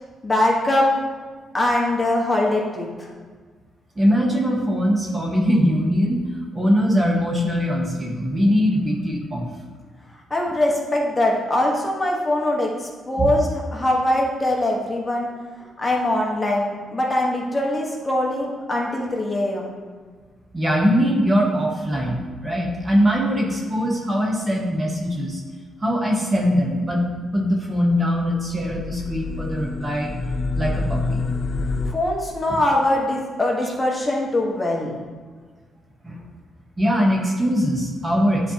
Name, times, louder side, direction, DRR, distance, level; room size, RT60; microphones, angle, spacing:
voice 1, 0.2-0.9 1.5-3.1 10.3-15.3 15.8-19.8 31.8-35.0, left 1 dB, 20° left, -2 dB, 1.3 m, -22 dB
voice 2, 4.0-6.2 6.5-9.5 13.2-13.3 20.5-25.4 25.8-27.1 27.3-30.1 30.5-31.2 36.0-36.2 36.8-38.5, equal, 25° right, -1 dB, 1.1 m, -21 dB
sound 1, 28.3-31.9, left 3 dB, 35° left, 0.4 m, -27 dB
9.9 x 4.3 x 2.9 m, 1.5 s
cardioid pair, 105°, 0 cm